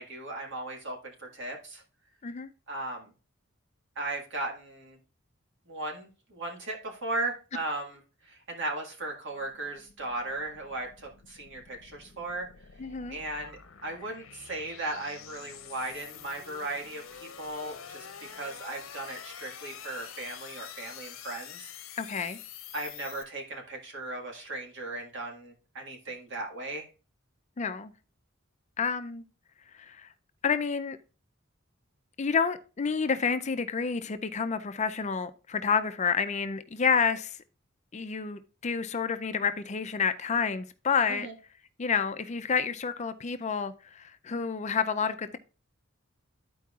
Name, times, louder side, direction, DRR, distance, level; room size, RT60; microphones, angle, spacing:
voice 1, 0.0-1.8 2.7-3.1 4.0-5.0 5.7-12.5 13.1-18.1 18.3-21.7 22.7-26.9 41.1-41.3, right 2 dB, 65° right, 1.8 m, -37 dB
sound 1, 9.4-23.2, left 8 dB, 90° left, 0.7 m, -47 dB
voice 2, 12.8-13.2 22.0-22.4 27.6-27.9 28.8-29.2 29.9-30.1 30.4-31.0 32.2-37.4 37.9-41.3 41.8-45.4, left 6 dB, 35° left, 0.5 m, -29 dB
13.0 x 4.6 x 2.4 m
head